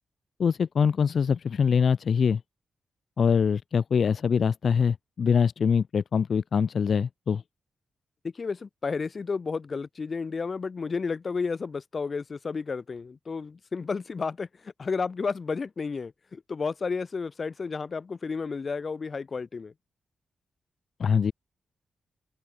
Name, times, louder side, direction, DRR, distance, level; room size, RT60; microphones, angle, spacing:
voice 1, 0.4-2.4 3.2-7.4 21.0-21.3, left 6 dB, 55° left, 0.4 m, -24 dB
voice 2, 8.2-19.7, left 4 dB, 40° left, 1.0 m, -32 dB
open air
wide cardioid pair, 130°, 0 cm